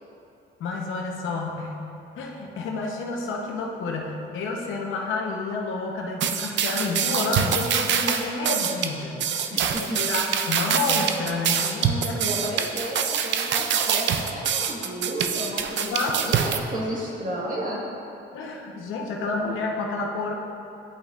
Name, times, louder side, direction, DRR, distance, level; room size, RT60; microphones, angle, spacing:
voice 1, 0.6-1.8 2.2-12.4 15.8-16.4 18.3-20.3, left 3 dB, 80° left, 0 dB, 0.9 m, -30 dB
sound 1, 6.2-16.6, right 8 dB, 65° right, 0.5 m, -25 dB
voice 2, 9.5-10.0 12.2-17.8, right 1 dB, 45° right, -4 dB, 1.6 m, -32 dB
11.0 x 5.3 x 2.5 m, 2.7 s
cardioid pair, 90°, 20 cm